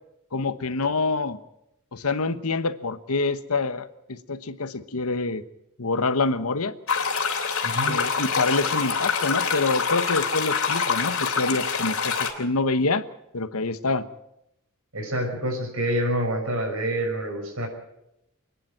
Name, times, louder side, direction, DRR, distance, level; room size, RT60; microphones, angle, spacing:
voice 1, 0.3-1.4 1.9-5.4 5.8-6.7 7.9-13.0 13.3-14.1, left 3 dB, 85° left, 12 dB, 1.2 m, -26 dB
sound 1, 6.9-12.3, left 5 dB, 70° left, 3.2 m, -25 dB
voice 2, 7.6-8.0 14.9-17.7, equal, 70° right, 3 dB, 6.0 m, -27 dB
27.5 x 10.5 x 9.1 m, 0.83 s
head